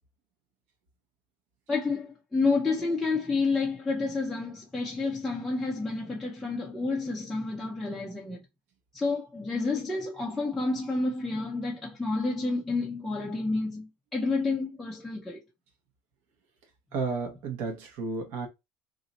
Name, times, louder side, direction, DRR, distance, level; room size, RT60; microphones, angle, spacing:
voice 1, 1.7-8.4 8.9-15.4, left 3 dB, 5° left, 0.5 m, -29 dB
voice 2, 16.9-18.5, right 4 dB, 50° right, 1.0 m, -32 dB
2.7 x 2.5 x 4.0 m
cardioid pair, 175°, 5 cm